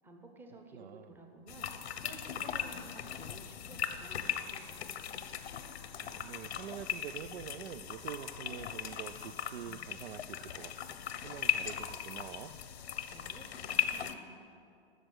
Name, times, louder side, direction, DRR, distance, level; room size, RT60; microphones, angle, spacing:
voice 1, 0.0-4.9 13.1-14.4, right 2 dB, 5° right, 3 dB, 0.8 m, -54 dB
voice 2, 0.7-1.1 5.9-11.0 11.2-12.5, right 10 dB, 75° right, 15 dB, 0.6 m, -46 dB
sound 1, 1.5-14.1, left 9 dB, 90° left, 1.0 m, -38 dB
13.5 x 6.5 x 7.9 m, 2.5 s
hypercardioid pair, 155°, 31 cm